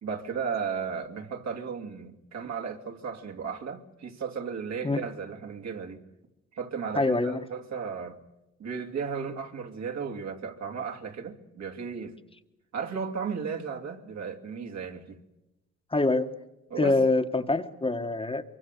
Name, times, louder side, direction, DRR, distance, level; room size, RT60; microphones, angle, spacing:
voice 1, 0.0-6.0 6.5-8.2 8.6-12.1 12.7-15.2 16.7-17.0, right 6 dB, 65° right, 3.0 m, -35 dB
voice 2, 6.9-7.4 15.9-16.3 16.8-18.4, left 2 dB, 20° left, 1.5 m, -25 dB
24.5 x 23.5 x 6.9 m
cardioid pair, 90°, 30 cm